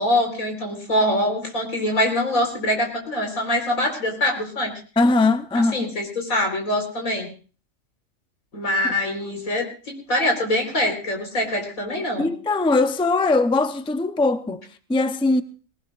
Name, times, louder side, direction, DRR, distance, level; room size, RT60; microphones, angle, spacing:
voice 1, 0.0-4.7 5.7-7.3 8.5-12.3, left 1 dB, 85° left, 4.7 m, -24 dB
voice 2, 5.0-5.9 12.2-14.6 14.9-15.4, left 3 dB, 5° left, 0.4 m, -20 dB
21.5 x 19.0 x 2.5 m
omnidirectional pair, 1.4 m